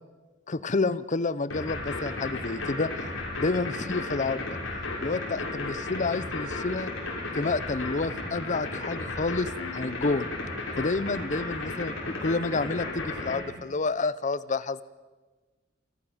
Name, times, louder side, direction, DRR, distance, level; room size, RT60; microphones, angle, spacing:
voice 1, 0.5-2.9 3.4-4.5 5.0-6.9 7.3-10.3 10.8-14.8, left 3 dB, 40° left, 17 dB, 0.7 m, -29 dB
sound 1, 1.5-13.4, left 2 dB, 85° left, 6.4 m, -34 dB
28.0 x 14.0 x 7.2 m, 1.3 s
head